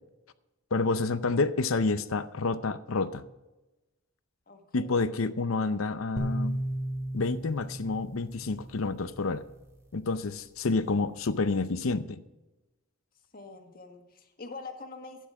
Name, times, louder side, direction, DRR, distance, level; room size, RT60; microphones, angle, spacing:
voice 1, 0.7-3.2 4.7-6.6 7.1-9.4 9.9-12.2, left 3 dB, 80° left, 13 dB, 0.7 m, -29 dB
voice 2, 4.5-5.0 13.3-15.3, left 3 dB, 45° left, 4 dB, 1.6 m, -45 dB
sound 1, 6.2-9.4, right 1 dB, 15° right, 1.3 m, -35 dB
12.0 x 9.2 x 4.8 m, 1.0 s
head